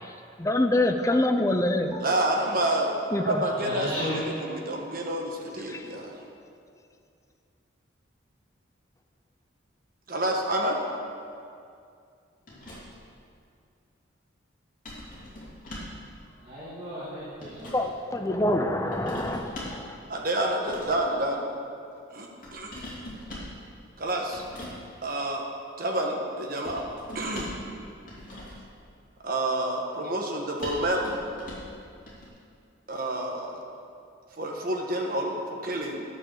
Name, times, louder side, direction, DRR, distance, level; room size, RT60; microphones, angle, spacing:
voice 1, 0.0-2.0 3.1-3.4 5.7-5.9 17.7-20.0, left 1 dB, 15° left, 5 dB, 0.5 m, -26 dB
voice 2, 2.0-2.9 3.2-6.1 10.1-10.8 20.1-21.4 22.1-22.8 24.0-24.4 25.0-25.4 25.8-26.8 27.1-27.5 29.2-31.1 32.9-33.6 34.4-36.0, right 1 dB, 45° right, 0 dB, 1.3 m, -28 dB
voice 3, 3.6-4.2 16.4-17.7, equal, 30° right, -12 dB, 2.3 m, -34 dB
sound 1, 12.5-13.1 14.8-16.0 17.0-17.9 18.9-19.9 20.6-21.1 22.4-23.6 24.3-24.8 26.6-27.7 28.0-28.7 30.6-31.7 32.1-32.3, left 1 dB, 40° left, 2.7 m, -41 dB
9.9 x 7.3 x 6.6 m, 2.4 s
head